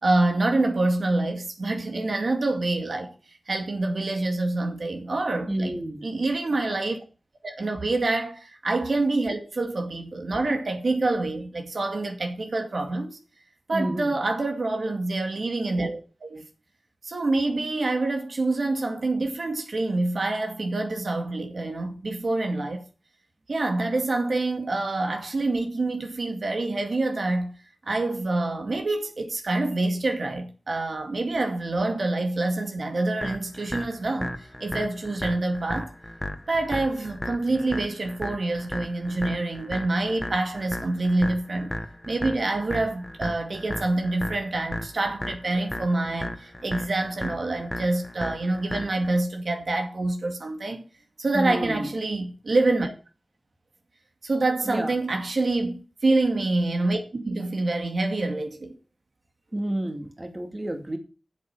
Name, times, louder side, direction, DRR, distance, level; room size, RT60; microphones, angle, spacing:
voice 1, 0.0-5.7 6.0-7.0 7.4-13.2 13.7-16.4 17.0-22.8 23.5-27.6 27.9-35.9 36.5-41.7 42.1-50.8 51.2-52.9 54.2-58.8, right 2 dB, 70° right, 2.1 m, -26 dB
voice 2, 5.5-6.0 13.7-14.2 51.3-51.9 54.6-54.9 59.5-61.0, right 1 dB, 30° right, 2.3 m, -29 dB
sound 1, 33.2-49.2, left 1 dB, 15° left, 1.5 m, -35 dB
8.1 x 7.8 x 7.3 m
wide cardioid pair, 70°, 0 cm